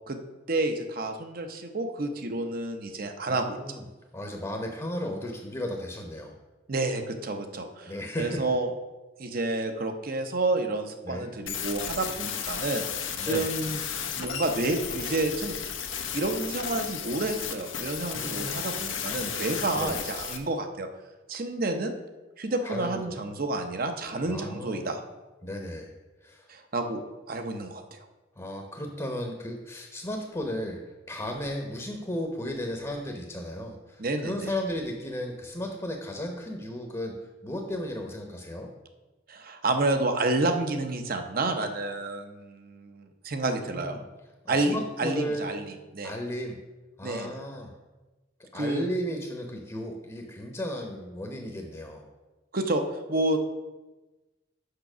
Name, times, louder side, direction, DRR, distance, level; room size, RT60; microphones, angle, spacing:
voice 1, 0.5-3.6 6.7-8.7 9.2-13.8 14.2-15.6 16.1-20.9 21.3-21.9 22.4-25.0 26.5-27.0 27.3-28.0 34.0-34.5 39.3-44.0 44.5-45.7 45.9-46.1 47.0-47.3 48.5-48.9 52.5-52.8 53.1-53.4, right 2 dB, 50° right, 6 dB, 0.8 m, -29 dB
voice 2, 3.3-3.8 4.1-6.3 7.9-8.4 11.0-11.3 13.2-13.5 18.1-18.6 19.7-20.0 22.6-23.1 24.3-24.9 25.4-25.9 26.2-26.5 28.4-30.8 31.1-38.7 43.4-44.0 44.4-45.5 46.0-46.6 47.0-47.7 48.5-52.1, left 1 dB, 15° left, 2 dB, 0.8 m, -35 dB
sound 1, 11.5-20.4, left 8 dB, 90° left, 0.9 m, -34 dB
6.6 x 5.8 x 6.0 m, 1.1 s
head